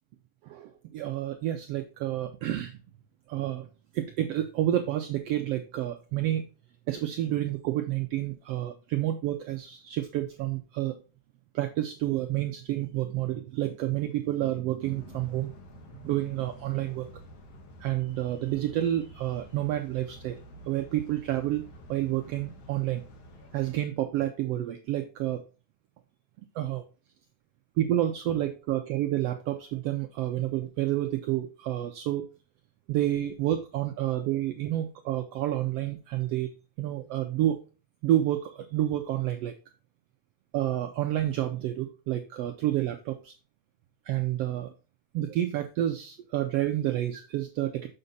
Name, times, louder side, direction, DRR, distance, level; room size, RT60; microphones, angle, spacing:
voice 1, 0.4-2.8 3.3-3.7 3.9-6.4 6.9-11.0 11.5-15.5 16.0-17.1 17.8-20.4 20.7-23.0 23.5-25.4 26.6-26.8 27.8-32.2 32.9-36.5 36.8-37.6 38.0-39.5 40.5-43.3 44.1-44.7 45.1-47.9, right 13 dB, 90° right, 7 dB, 1.3 m, -29 dB
sound 1, 14.8-23.8, equal, 55° left, 2.1 m, -49 dB
6.7 x 6.6 x 4.1 m, 0.34 s
omnidirectional pair, 3.6 m